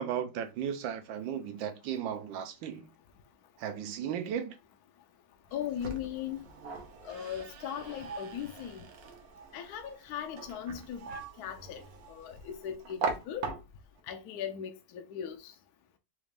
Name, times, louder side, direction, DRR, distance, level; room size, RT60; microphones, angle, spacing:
voice 1, 0.0-2.9 3.6-4.5, right 8 dB, 80° right, 1.3 m, -35 dB
voice 2, 5.5-6.4 7.0-8.8 9.5-11.0 11.4-11.8 12.1-13.5 14.1-15.5, left 9 dB, 70° left, 0.9 m, -38 dB
sound 1, 5.5-14.0, right 4 dB, 60° right, 0.9 m, -41 dB
4.1 x 2.4 x 3.3 m
omnidirectional pair, 2.1 m